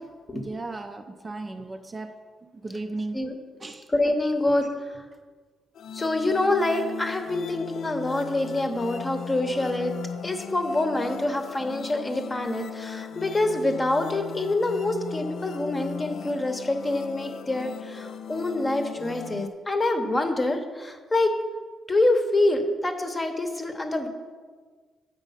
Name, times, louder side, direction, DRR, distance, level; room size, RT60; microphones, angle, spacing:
voice 1, 0.3-2.1 2.4-3.3 3.6-3.9, right 2 dB, 25° right, 5 dB, 0.5 m, -35 dB
voice 2, 3.9-4.7 5.9-9.9 10.2-21.3 21.9-24.1, left 2 dB, 20° left, 5 dB, 0.9 m, -26 dB
sound 1, 5.7-19.5, left 7 dB, 75° left, 0.4 m, -38 dB
8.2 x 5.0 x 5.6 m, 1.5 s
cardioid pair, 100°, 0 cm